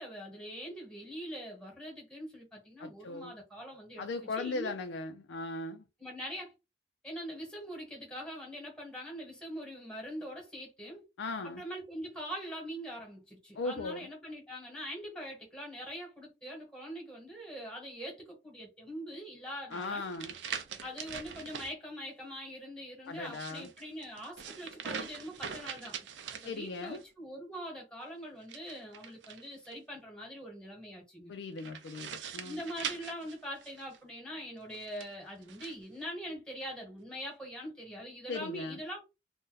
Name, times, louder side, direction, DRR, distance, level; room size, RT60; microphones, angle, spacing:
voice 1, 0.0-4.7 6.0-6.5 7.0-11.0 11.4-20.0 20.8-26.0 26.3-31.3 32.4-39.0, equal, 5° left, 1.1 m, -43 dB
voice 2, 2.8-3.3 4.0-5.8 11.2-11.6 13.6-14.1 19.7-20.3 23.1-23.7 26.4-27.0 31.3-32.6 38.3-38.8, left 3 dB, 85° left, 0.4 m, -38 dB
sound 1, 19.7-21.7 23.1-27.0 28.4-29.7 31.6-34.0 34.7-35.8, right 7 dB, 80° right, 0.5 m, -43 dB
2.6 x 2.1 x 3.8 m
head